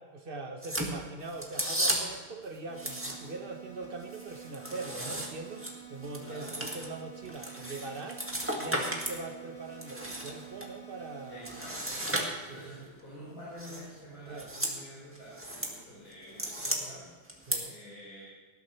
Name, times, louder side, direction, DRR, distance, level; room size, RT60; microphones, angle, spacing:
voice 1, 0.0-8.2 8.6-11.6 12.3-12.7 14.3-14.5 17.5-17.7, right 3 dB, 40° right, 5 dB, 0.9 m, -42 dB
sound 1, 0.6-2.3 2.7-3.5 3.8-9.2 9.6-10.7 11.4-12.7 13.6-13.9 14.3-14.8 15.1-15.7 16.1-16.8 17.3-17.6, right 1 dB, 5° right, 1.7 m, -35 dB
sound 2, 2.7-11.7, right 10 dB, 40° left, 2.6 m, -49 dB
voice 2, 6.2-6.6 11.3-17.1 17.7-18.2, equal, 60° left, -7 dB, 5.4 m, -48 dB
19.5 x 13.0 x 3.3 m, 1.4 s
omnidirectional pair, 2.4 m